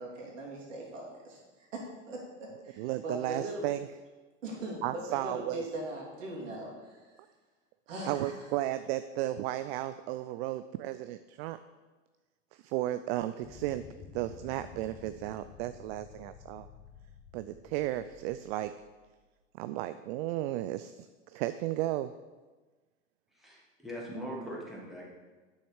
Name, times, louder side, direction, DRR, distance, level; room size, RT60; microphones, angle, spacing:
voice 1, 0.0-1.4 1.7-3.6 4.4-7.0 7.9-8.3, right 1 dB, 80° right, -3 dB, 2.9 m, -40 dB
voice 2, 2.8-3.9 4.8-5.6 8.1-11.6 12.5-13.8 14.1-16.7 17.3-18.7 19.6-22.1, right 14 dB, 55° right, 11 dB, 0.5 m, -34 dB
sound 1, 13.4-19.2, left 6 dB, 35° left, 1.4 m, -52 dB
voice 3, 23.3-25.1, equal, ahead, -5 dB, 2.7 m, -41 dB
8.5 x 6.5 x 4.7 m, 1.3 s
hypercardioid pair, 95°, 37 cm